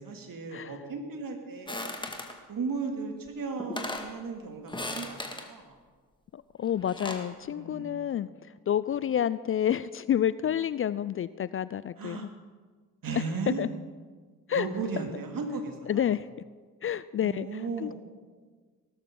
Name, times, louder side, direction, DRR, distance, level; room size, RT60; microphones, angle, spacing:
voice 1, 0.0-1.9 2.5-5.6 7.5-8.1 12.0-12.3 13.0-13.6 14.5-16.0 17.2-17.9, right 4 dB, 45° right, 3 dB, 2.6 m, -36 dB
sound 1, 1.7-2.4 3.3-3.4 3.6-4.1 4.7-5.5 6.7-7.3, left 1 dB, 10° left, 2.1 m, -36 dB
voice 2, 6.3-8.3 8.7-12.3 13.1-13.2 13.6-13.7 14.5-14.7 15.9-16.3 16.8-17.9, left 10 dB, 30° left, 17 dB, 0.4 m, -29 dB
19.0 x 13.0 x 3.9 m, 1.5 s
hypercardioid pair, 45°, 45 cm